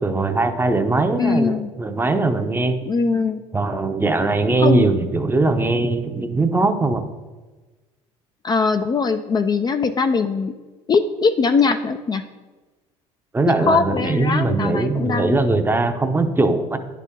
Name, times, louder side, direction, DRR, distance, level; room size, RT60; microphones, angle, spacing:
voice 1, 0.0-2.8 3.5-7.0 13.3-16.8, right 3 dB, 15° right, 7 dB, 0.7 m, -20 dB
voice 2, 1.2-1.7 2.9-3.4 4.6-4.9 8.4-10.5 10.9-12.2 13.7-15.4, left 4 dB, 30° left, 8 dB, 0.4 m, -21 dB
9.7 x 4.2 x 3.7 m, 1.3 s
supercardioid pair, 80°, 14 cm